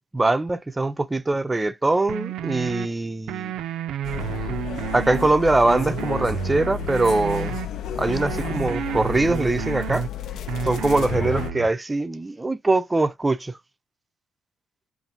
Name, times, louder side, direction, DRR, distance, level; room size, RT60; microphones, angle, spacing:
voice 1, 0.1-3.5 4.9-7.6 8.0-10.1 10.6-13.6, right 2 dB, 20° right, 0.5 m, -22 dB
sound 1, 2.1-2.9 3.3-5.3 5.7-7.7 8.1-10.1 10.5-11.7, right 10 dB, 70° right, 0.4 m, -31 dB
sound 2, 4.0-11.5, left 10 dB, 65° left, 0.5 m, -32 dB
5.4 x 2.6 x 2.5 m
hypercardioid pair, 60°, 0 cm